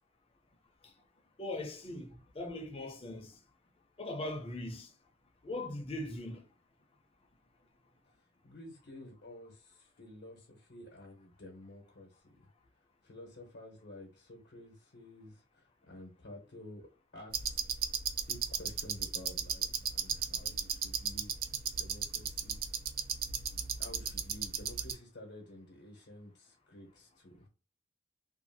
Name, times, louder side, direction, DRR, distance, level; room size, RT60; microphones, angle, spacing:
voice 1, 1.4-3.4 4.0-4.9 5.4-6.4, left 1 dB, 30° left, 0.6 m, -40 dB
voice 2, 8.4-12.5 13.0-17.6 18.3-21.4 21.8-22.6 23.8-27.5, left 1 dB, 75° left, 0.8 m, -51 dB
sound 1, 17.3-24.9, right 7 dB, 55° right, 0.4 m, -36 dB
2.6 x 2.4 x 2.6 m
head